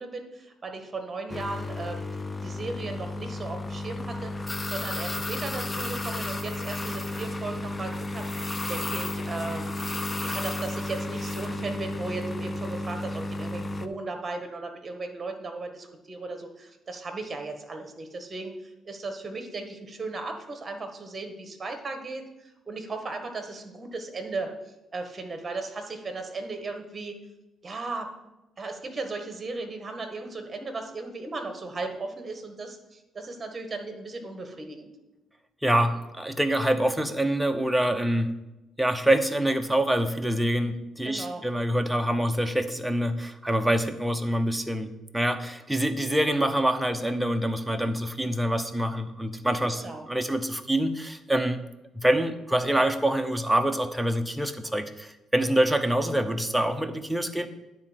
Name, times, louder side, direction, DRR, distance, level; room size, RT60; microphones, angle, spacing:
voice 1, 0.0-2.0 2.4-4.3 4.6-9.7 10.2-27.2 27.6-28.1 28.6-34.9 41.0-41.4 49.8-50.0, right 3 dB, 30° right, 6 dB, 1.6 m, -36 dB
sound 1, 1.3-13.9, left 2 dB, 25° left, 0.6 m, -33 dB
voice 2, 35.6-38.4 38.8-51.6 51.9-57.5, right 1 dB, ahead, 7 dB, 0.9 m, -26 dB
9.8 x 4.3 x 7.5 m, 0.98 s
cardioid pair, 90°, 0 cm